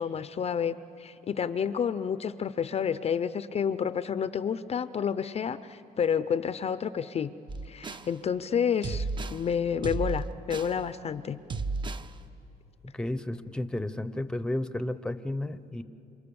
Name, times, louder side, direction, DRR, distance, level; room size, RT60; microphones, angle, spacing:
voice 1, 0.0-7.3 7.6-11.4, left 7 dB, 40° left, 13 dB, 0.6 m, -30 dB
sound 1, 7.5-8.1 8.8-9.4 9.8-10.8 11.5-12.1, right 3 dB, 30° right, 0.8 m, -33 dB
voice 2, 12.9-15.8, left 1 dB, 5° left, 12 dB, 0.8 m, -32 dB
28.5 x 25.5 x 7.0 m, 2.8 s
cardioid pair, 110°, 17 cm